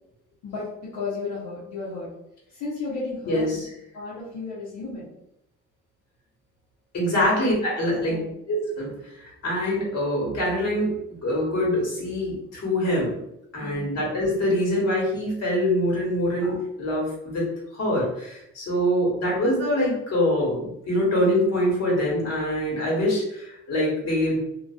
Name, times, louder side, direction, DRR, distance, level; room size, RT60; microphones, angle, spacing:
voice 1, 0.4-2.1 2.5-3.6 3.9-5.1 7.1-7.2 7.9-8.3 13.6-13.9, left 4 dB, 85° left, -8 dB, 0.8 m, -34 dB
voice 2, 3.3-3.7 6.9-13.2 13.5-17.5 17.7-24.4, left 1 dB, 55° left, -4 dB, 1.3 m, -24 dB
2.4 x 2.3 x 2.4 m, 0.81 s
cardioid pair, 90°, 30 cm